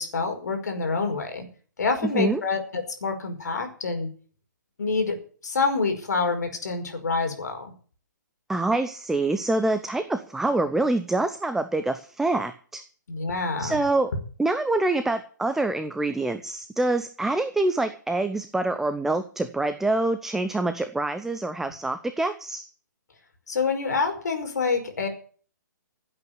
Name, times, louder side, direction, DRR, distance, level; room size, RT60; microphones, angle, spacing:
voice 1, 0.0-1.4 1.8-4.1 4.8-5.2 5.4-7.7 13.1-13.8 23.5-25.1, left 4 dB, 60° left, 5 dB, 5.3 m, -27 dB
voice 2, 2.0-2.4 8.5-12.8 13.6-14.1 14.4-22.6, right 2 dB, 5° right, 9 dB, 0.8 m, -26 dB
17.0 x 8.6 x 7.0 m, 0.42 s
figure-of-eight pair, 125°, 10 cm